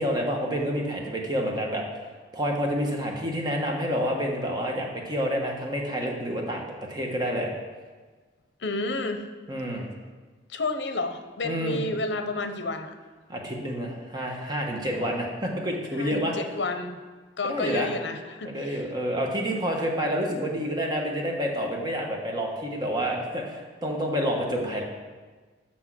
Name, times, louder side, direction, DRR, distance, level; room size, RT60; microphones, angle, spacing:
voice 1, 0.0-1.8 2.3-7.5 9.5-9.8 11.4-11.8 13.3-16.3 17.4-17.9 18.4-24.8, equal, 25° right, 0 dB, 1.2 m, -28 dB
voice 2, 8.6-9.3 10.5-12.9 14.9-15.1 16.0-17.0 17.4-18.8, left 2 dB, 70° left, 7 dB, 0.7 m, -31 dB
6.2 x 6.2 x 6.1 m, 1.4 s
head